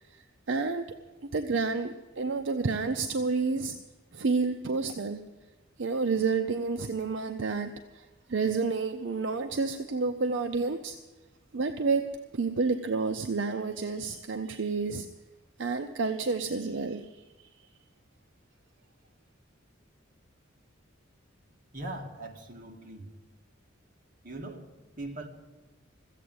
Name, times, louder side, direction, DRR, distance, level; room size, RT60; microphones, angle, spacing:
voice 1, 0.1-0.8 1.3-3.8 4.1-5.2 5.8-11.0 11.5-12.0 12.3-15.1 15.6-17.1 17.4-17.5, right 4 dB, 65° right, 0.6 m, -30 dB
voice 2, 21.7-23.1 24.2-24.7 25.0-25.3, right 2 dB, 45° right, 1.8 m, -40 dB
14.5 x 8.4 x 9.4 m
head